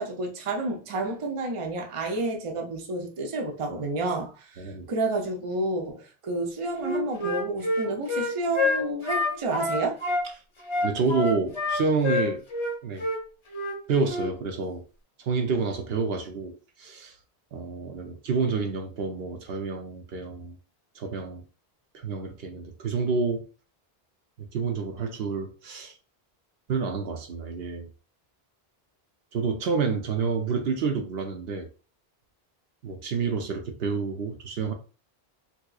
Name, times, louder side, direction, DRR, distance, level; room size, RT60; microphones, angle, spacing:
voice 1, 0.0-10.0, right 2 dB, 40° right, 0.6 m, -30 dB
Wind instrument woodwind instrument, 6.8-10.2 10.7-12.7 13.0-13.2 13.5-13.8 14.1-14.3, left 2 dB, 35° left, 0.7 m, -27 dB
voice 2, 10.8-12.4 12.8-13.1 13.9-14.8 15.2-16.5 16.8-17.2 17.5-20.6 21.0-21.4 21.9-23.4 24.4-25.9 26.7-27.9 29.3-31.7 32.8-34.7, right 4 dB, 75° right, 0.9 m, -28 dB
3.5 x 2.9 x 2.3 m
omnidirectional pair, 1.0 m